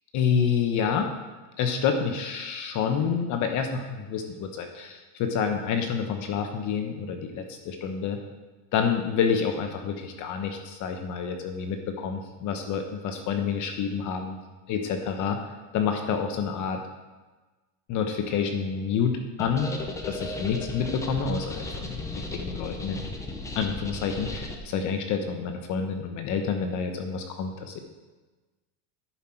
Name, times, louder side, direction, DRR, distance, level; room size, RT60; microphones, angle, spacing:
voice 1, 0.1-1.1 1.6-8.2 8.7-14.4 14.7-15.4 15.7-16.8 17.9-19.7 20.0-23.0 23.6-27.8, left 6 dB, 35° left, 5 dB, 1.0 m, -28 dB
sound 1, 19.4-24.6, left 2 dB, 5° left, 0.4 m, -36 dB
10.5 x 7.6 x 4.5 m, 1.2 s
supercardioid pair, 160°, 49 cm